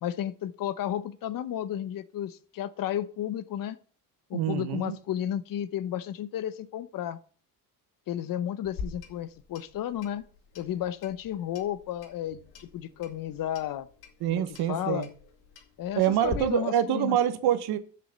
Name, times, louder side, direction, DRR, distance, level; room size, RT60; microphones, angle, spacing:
voice 1, 0.0-3.8 4.3-7.2 8.1-10.2 10.6-13.9 14.3-15.1 15.8-17.2, left 11 dB, 60° left, 15 dB, 0.9 m, -33 dB
voice 2, 4.3-5.0 14.2-15.1 15.9-17.8, right 11 dB, 80° right, 11 dB, 1.3 m, -26 dB
Clock, 8.6-16.4, left 5 dB, 80° left, 2.4 m, -45 dB
7.5 x 7.0 x 6.8 m, 0.42 s
cardioid pair, 120°, 38 cm